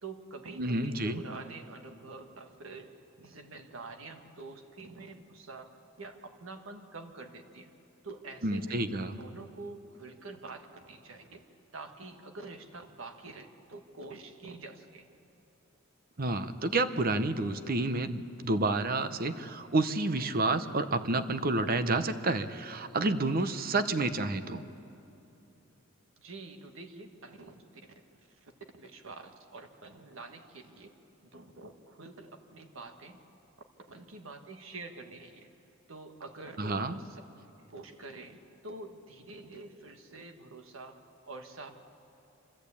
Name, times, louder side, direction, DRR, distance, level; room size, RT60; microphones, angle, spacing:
voice 1, 0.0-5.7 6.0-7.7 8.0-8.9 9.2-11.4 11.7-15.1 26.2-27.6 28.4-28.5 28.8-30.9 31.2-33.1 33.9-35.5 35.9-37.2 37.6-41.0 41.3-41.7, right 3 dB, 80° right, 5 dB, 1.6 m, -46 dB
voice 2, 0.6-1.2 8.4-9.2 16.2-24.6 36.6-37.0, right 2 dB, 45° right, 11 dB, 0.8 m, -29 dB
25.5 x 14.0 x 8.5 m, 2.9 s
head